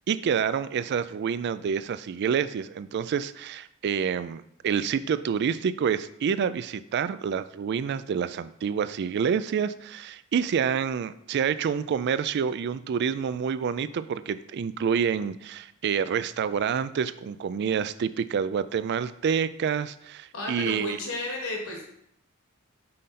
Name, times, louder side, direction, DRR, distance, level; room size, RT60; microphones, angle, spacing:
voice 1, 0.1-21.0, right 7 dB, 50° right, 14 dB, 0.3 m, -28 dB
voice 2, 20.3-21.8, left 2 dB, 70° left, 0 dB, 1.4 m, -33 dB
5.7 x 5.1 x 4.2 m, 0.73 s
head